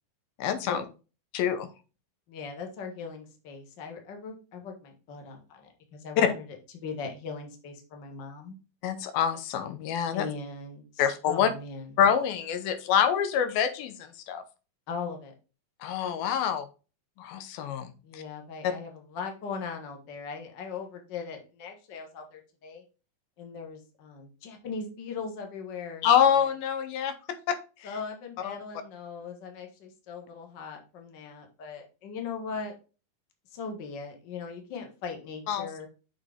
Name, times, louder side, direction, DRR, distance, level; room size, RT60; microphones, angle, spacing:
voice 1, 0.4-0.8 1.3-1.7 6.2-6.3 8.8-10.3 11.0-11.5 12.0-14.4 15.8-16.7 17.2-18.2 18.6-18.7 26.0-27.9 28.4-28.6 35.5-35.7, left 8 dB, 85° left, 10 dB, 2.7 m, -26 dB
voice 2, 2.3-6.4 6.7-8.6 10.1-11.9 14.9-15.3 18.0-22.8 23.4-26.5 27.8-32.7 33.5-35.9, left 5 dB, 45° left, 3 dB, 1.5 m, -39 dB
6.4 x 6.3 x 3.6 m, 0.33 s
omnidirectional pair, 4.1 m